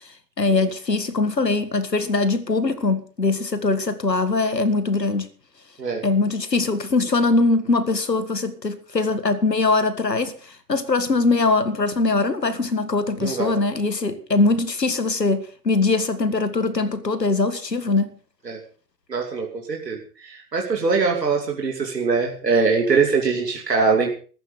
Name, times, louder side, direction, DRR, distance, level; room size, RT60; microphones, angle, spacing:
voice 1, 0.4-5.3 6.0-18.1, left 3 dB, 90° left, 1.9 m, -22 dB
voice 2, 13.2-13.5 18.4-18.6 19.1-24.1, right 4 dB, 85° right, 2.8 m, -22 dB
14.5 x 14.0 x 5.1 m
figure-of-eight pair, 90°, 48 cm